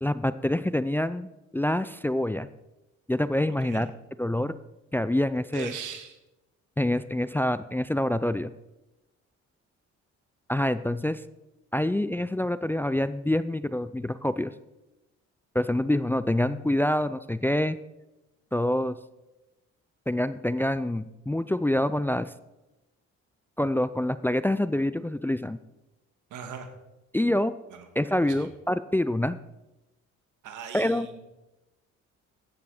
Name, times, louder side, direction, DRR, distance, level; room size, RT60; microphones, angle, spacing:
voice 1, 0.0-2.5 3.1-3.9 4.2-4.5 4.9-5.7 6.8-8.5 10.5-11.2 11.7-14.5 15.5-17.8 18.5-18.9 20.1-22.3 23.6-25.6 27.1-27.5 28.0-29.4 30.7-31.1, left 1 dB, 5° left, 14 dB, 0.4 m, -26 dB
voice 2, 3.5-3.8 5.5-6.2 26.3-26.7 27.7-27.9 28.2-28.5 30.4-31.2, right 7 dB, 80° right, 6 dB, 2.1 m, -39 dB
14.0 x 9.3 x 5.0 m, 0.97 s
cardioid pair, 90°, 30 cm